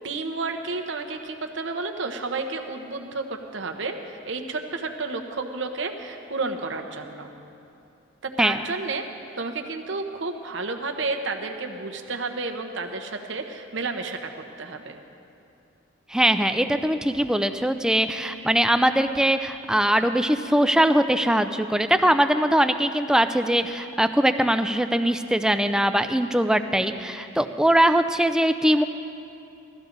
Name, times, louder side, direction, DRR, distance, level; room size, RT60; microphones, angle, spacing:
voice 1, 0.0-7.3 8.2-9.1 9.4-15.0, right 3 dB, 65° right, 4 dB, 1.0 m, -31 dB
voice 2, 16.1-28.8, right 1 dB, 5° right, 9 dB, 0.4 m, -21 dB
17.0 x 13.5 x 4.0 m, 2.7 s
head